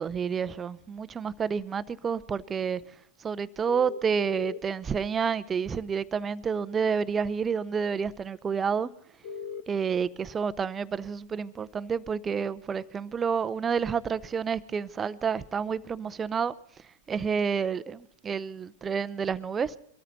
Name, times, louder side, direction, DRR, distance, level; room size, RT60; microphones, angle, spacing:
voice 1, 0.0-2.8 3.2-8.9 9.7-16.5 17.1-19.7, right 6 dB, 20° right, 0.6 m, -29 dB
sound 1, 3.7-4.6 5.7-5.8 9.2-9.6, left 6 dB, 60° left, 1.1 m, -37 dB
23.0 x 13.5 x 4.1 m
hypercardioid pair, 105°, 0 cm